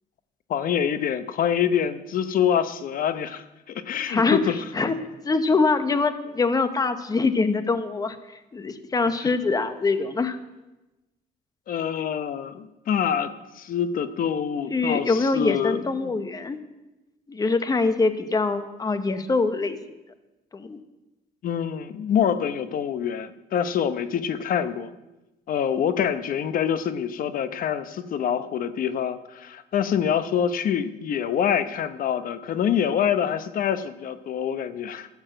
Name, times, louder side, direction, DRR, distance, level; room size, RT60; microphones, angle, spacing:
voice 1, 0.5-4.6 9.2-9.3 11.7-16.1 21.4-24.9 25.5-35.1, left 8 dB, 55° left, 11 dB, 0.9 m, -26 dB
voice 2, 4.1-4.4 4.7-4.9 5.2-8.2 8.5-10.4 14.7-16.6 17.3-19.8 20.5-20.8, left 3 dB, 20° left, 9 dB, 1.0 m, -23 dB
14.0 x 7.3 x 7.7 m, 1.0 s
cardioid pair, 110°, 17 cm